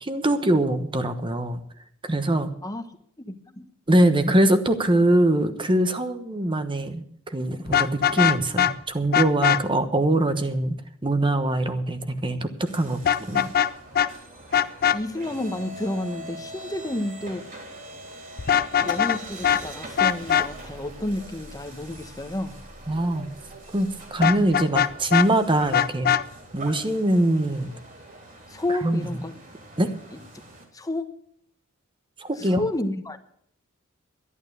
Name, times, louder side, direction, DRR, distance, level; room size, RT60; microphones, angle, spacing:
voice 1, 0.0-1.6 2.0-2.5 3.9-7.0 7.3-10.8 11.0-13.5 22.9-23.3 23.7-26.1 26.5-27.7 28.7-29.1 29.8-29.9 32.2-32.6, right 1 dB, 25° right, 1.1 m, -23 dB
voice 2, 3.2-3.7 14.9-17.5 18.8-22.5 28.5-29.3 30.7-31.2 32.4-33.2, left 1 dB, 15° left, 1.1 m, -30 dB
Vehicle horn car horn honking, 7.7-8.7 9.1-9.6 13.0-13.7 13.9-14.1 14.5-15.0 18.4-19.2 19.4-19.6 20.0-20.5 24.2-25.3 25.7-26.2, left 9 dB, 45° left, 0.5 m, -20 dB
sound 1, 12.7-30.6, right 1 dB, 40° right, 3.3 m, -43 dB
11.5 x 11.0 x 6.7 m
head